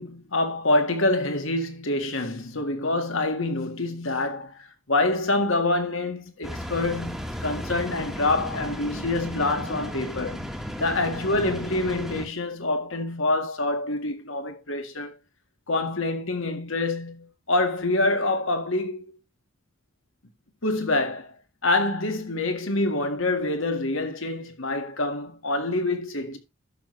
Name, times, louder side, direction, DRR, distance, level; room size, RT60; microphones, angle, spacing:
voice 1, 0.0-10.5 10.8-15.1 15.7-19.0 20.6-21.3 21.6-26.4, left 2 dB, 70° left, 1.8 m, -26 dB
sound 1, 6.4-12.3, equal, ahead, 1.3 m, -34 dB
12.0 x 6.2 x 3.2 m
head